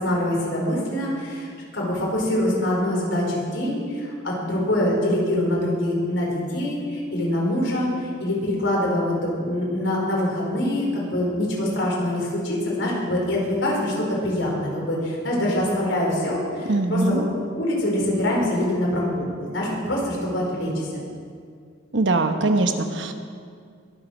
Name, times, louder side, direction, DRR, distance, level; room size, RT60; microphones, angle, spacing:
voice 1, 0.0-17.2 17.5-20.9, left 1 dB, 80° left, -3 dB, 4.7 m, -24 dB
voice 2, 16.7-17.2 21.9-23.1, right 2 dB, 70° right, 7 dB, 1.1 m, -21 dB
21.5 x 7.9 x 6.4 m, 2.2 s
head